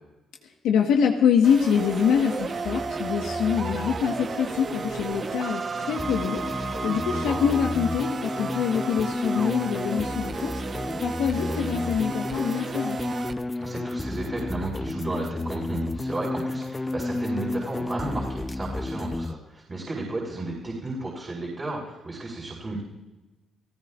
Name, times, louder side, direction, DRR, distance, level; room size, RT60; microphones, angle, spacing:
voice 1, 0.6-13.0, left 7 dB, 85° left, 2 dB, 1.3 m, -25 dB
sound 1, 1.4-13.3, right 5 dB, 45° right, 0.9 m, -33 dB
sound 2, 2.6-19.4, left 2 dB, 15° left, 0.5 m, -32 dB
voice 2, 7.0-7.4 13.6-22.8, right 2 dB, 30° right, -4 dB, 4.8 m, -33 dB
29.5 x 15.0 x 2.4 m, 1.1 s
supercardioid pair, 65°, 0 cm